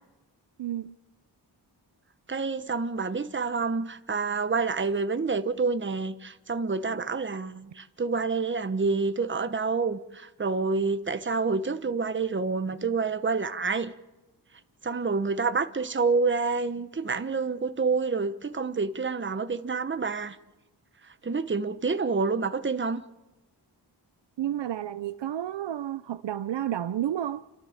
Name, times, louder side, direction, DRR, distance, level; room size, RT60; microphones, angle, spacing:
voice 1, 0.6-0.9 24.4-27.4, right 11 dB, 75° right, 0.7 m, -31 dB
voice 2, 2.3-13.9 14.8-20.4 21.0-23.0, right 4 dB, 25° right, 1.0 m, -28 dB
29.0 x 13.0 x 7.2 m
wide cardioid pair, 80°, 43 cm